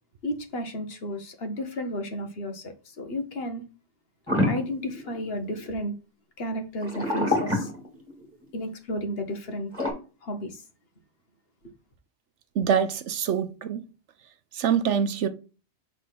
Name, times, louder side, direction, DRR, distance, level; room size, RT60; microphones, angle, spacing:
voice 1, 0.2-3.6 4.5-5.9 6.4-7.7 8.5-9.7 10.2-10.6, equal, 55° left, 1.3 m, -33 dB
sound 1, 4.3-5.7 6.8-8.4 9.7-9.9, left 1 dB, 10° right, 2.3 m, -27 dB
voice 2, 12.6-13.8 14.5-15.3, right 7 dB, 70° right, 1.0 m, -25 dB
5.8 x 3.6 x 5.9 m
omnidirectional pair, 1.3 m